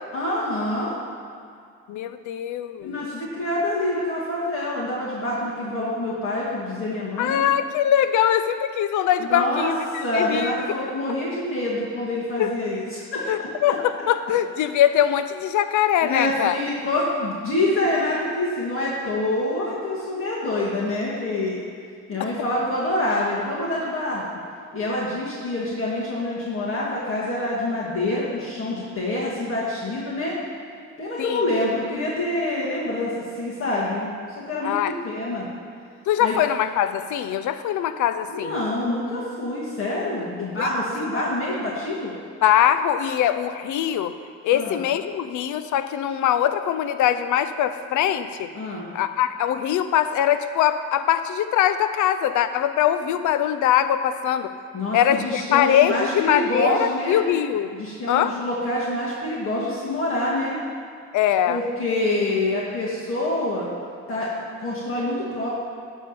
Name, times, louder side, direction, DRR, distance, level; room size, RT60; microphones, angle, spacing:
voice 1, 0.1-0.9 2.8-7.5 9.2-9.7 10.0-13.7 16.0-21.7 22.1-24.2 24.7-30.4 31.0-34.1 34.4-34.8 35.0-35.5 36.2-36.3 38.3-42.1 44.5-44.8 48.5-48.9 54.7-57.2 57.8-60.6 61.5-63.7 64.1-64.3 64.6-65.5, left 1 dB, 45° left, -7 dB, 2.1 m, -26 dB
voice 2, 1.9-3.0 7.2-10.6 12.4-12.5 13.3-16.6 22.2-22.3 31.2-31.4 34.6-34.9 36.1-38.6 40.4-40.7 42.4-44.2 44.4-48.5 48.9-54.5 54.9-57.7 58.1-58.3 61.1-61.6, left 10 dB, 75° left, 11 dB, 0.6 m, -22 dB
11.0 x 3.7 x 6.9 m, 2.3 s
cardioid pair, 90°, 30 cm